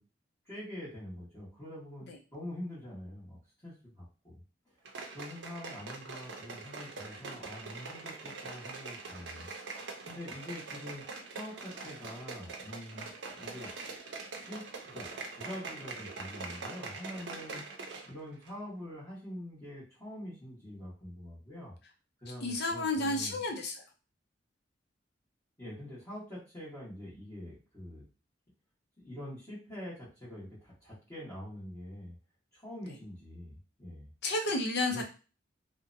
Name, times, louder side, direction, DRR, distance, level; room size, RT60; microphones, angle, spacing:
voice 1, 0.4-4.4 5.1-9.5 10.0-11.0 11.3-13.8 14.4-17.6 18.1-21.7 22.2-23.4 25.6-28.0 29.0-32.1 32.5-34.1 34.9-35.0, left 1 dB, 20° left, -11 dB, 1.2 m, -45 dB
sound 1, 4.8-18.1 18.4-18.5, right 4 dB, 65° right, 0.6 m, -43 dB
voice 2, 22.4-23.7 34.2-35.0, left 2 dB, 60° left, 3 dB, 0.6 m, -31 dB
2.7 x 2.1 x 2.6 m, 0.34 s
head